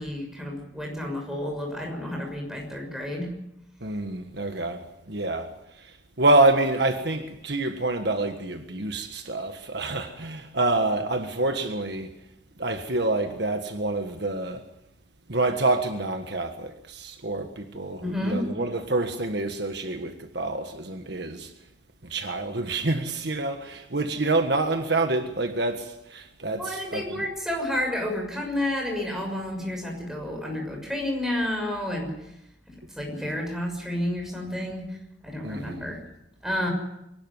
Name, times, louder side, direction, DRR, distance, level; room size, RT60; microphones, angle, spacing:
voice 1, 0.0-3.3 18.0-18.5 26.6-32.1 33.0-35.0 35.2-36.0 36.4-36.7, left 1 dB, ahead, 6.4 m, -30 dB
voice 2, 3.8-5.5 5.8-12.1 12.6-14.6 15.3-21.5 22.0-27.2 35.4-35.9, right 2 dB, 60° right, 1.6 m, -27 dB
24.5 x 12.0 x 9.6 m
head